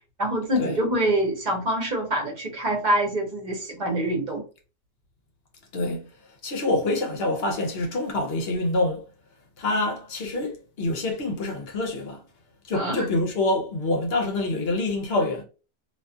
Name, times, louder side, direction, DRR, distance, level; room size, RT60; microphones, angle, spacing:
voice 1, 0.2-4.4 12.7-13.0, right 1 dB, 45° right, 0.9 m, -25 dB
voice 2, 5.7-6.1 6.4-9.0 9.6-12.2 12.7-15.4, left 2 dB, 70° left, 0.9 m, -26 dB
2.4 x 2.3 x 2.5 m
omnidirectional pair, 1.1 m